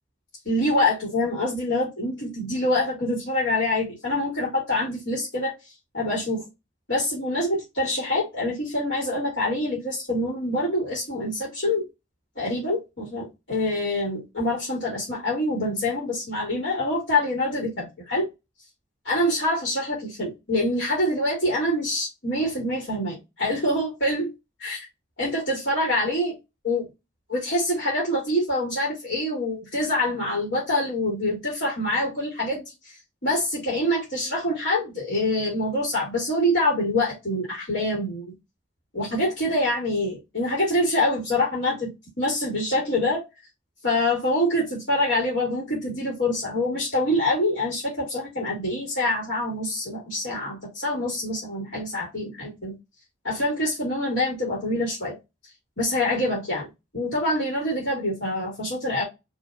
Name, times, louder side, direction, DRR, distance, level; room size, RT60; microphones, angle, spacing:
voice 1, 0.5-5.5 5.9-6.4 6.9-11.9 12.4-18.3 19.0-24.3 24.6-24.9 25.2-26.3 26.6-26.8 27.3-32.6 33.2-38.3 38.9-41.9 42.2-43.2 43.8-52.8 53.2-55.2 55.8-56.7 56.9-59.0, left 1 dB, 75° left, 2.1 m, -25 dB
4.9 x 3.2 x 2.4 m
head